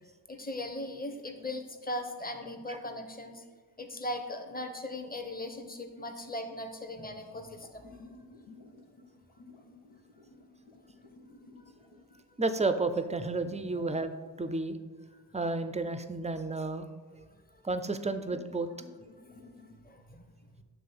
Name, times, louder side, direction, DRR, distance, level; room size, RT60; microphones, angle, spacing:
voice 1, 0.3-3.5 3.8-8.1 13.8-13.9 17.3-17.6 19.2-19.4 19.8-20.3, left 1 dB, 20° left, 6 dB, 0.9 m, -39 dB
sound 1, 7.3-14.0 17.3-17.4 18.2-19.8, left 3 dB, 90° left, 1.0 m, -55 dB
voice 2, 12.4-14.1 14.4-14.8 15.3-16.9 17.6-18.7, right 3 dB, 15° right, 10 dB, 0.4 m, -31 dB
6.8 x 3.3 x 5.6 m, 1.4 s
cardioid pair, 40°, 49 cm